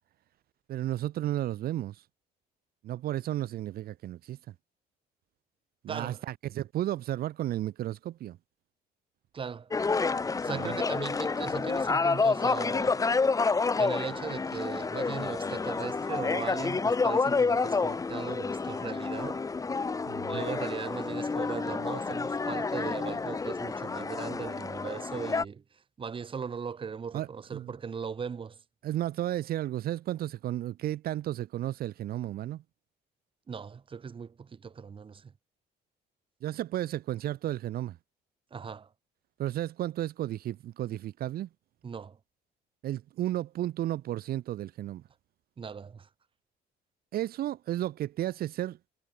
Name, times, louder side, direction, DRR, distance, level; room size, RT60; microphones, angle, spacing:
voice 1, 0.7-2.0 2.8-4.4 5.8-8.4 10.5-10.7 20.1-20.4 27.1-27.7 28.8-32.6 36.4-38.0 39.4-41.5 42.8-45.0 47.1-48.8, right 13 dB, 65° right, 1.3 m, -33 dB
voice 2, 5.9-6.2 9.3-9.7 10.4-13.1 13.8-19.4 20.3-25.6 26.0-28.6 33.5-35.3 38.5-38.9 41.8-42.2 45.6-46.1, right 6 dB, 30° right, 1.7 m, -38 dB
sound 1, 9.7-25.4, left 4 dB, 20° left, 1.1 m, -29 dB
cardioid pair, 110°, 17 cm